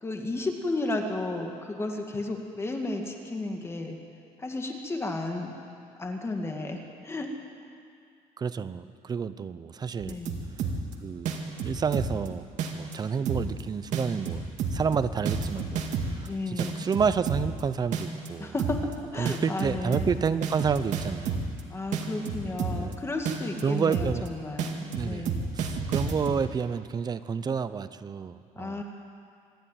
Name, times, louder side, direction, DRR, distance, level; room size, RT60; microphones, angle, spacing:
voice 1, 0.0-4.0 4.4-5.5 6.0-7.3 10.1-10.4 16.3-16.9 18.4-20.2 21.7-25.5 28.6-28.8, left 2 dB, 20° left, 3 dB, 2.0 m, -33 dB
voice 2, 8.4-10.2 11.0-12.4 12.7-14.4 14.7-18.5 19.2-21.4 22.7-23.0 23.6-24.3 24.9-25.3 25.5-28.8, right 6 dB, 30° right, 13 dB, 0.7 m, -30 dB
sound 1, 10.0-10.9 11.3-12.3 12.6-12.9 13.3-13.6 13.9-16.3 16.6-17.6 17.9-18.3 18.6-18.9 19.3-21.6 21.9-22.9 23.3-23.6 23.9-24.3 24.6-26.4, right 6 dB, 65° right, 2.1 m, -30 dB
25.5 x 11.0 x 9.3 m, 2.3 s
cardioid pair, 135°, 13 cm